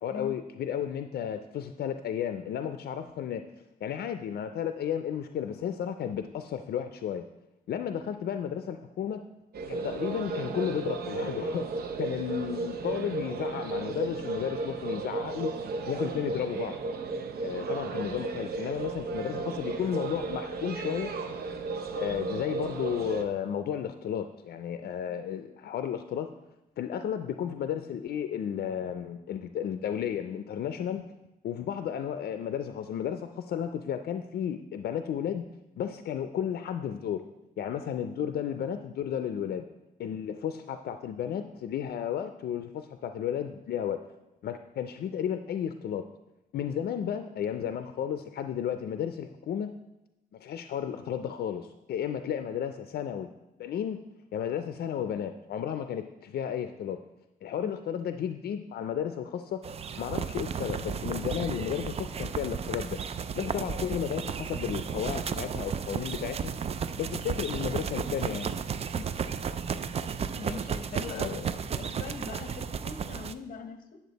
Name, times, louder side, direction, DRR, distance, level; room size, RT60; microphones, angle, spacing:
voice 1, 0.0-3.4 3.8-7.2 7.7-9.2 9.7-11.7 12.0-15.5 15.9-16.8 17.4-21.1 21.9-26.3 26.8-31.0 31.4-35.4 35.8-37.2 37.6-39.7 40.0-44.0 44.4-46.0 46.5-49.7 50.3-53.3 53.6-54.0 54.3-57.0 57.4-59.6 60.0-63.0 63.4-66.5 67.0-68.5 71.1-71.4, left 9 dB, 90° left, 8 dB, 0.4 m, -33 dB
sound 1, 9.5-23.2, right 3 dB, 75° right, 0.7 m, -34 dB
sound 2, 59.6-73.3, right 7 dB, 40° right, 0.4 m, -33 dB
voice 2, 70.4-74.0, left 5 dB, 60° left, 7 dB, 0.9 m, -42 dB
9.5 x 7.1 x 4.0 m, 0.94 s
wide cardioid pair, 140°, 16 cm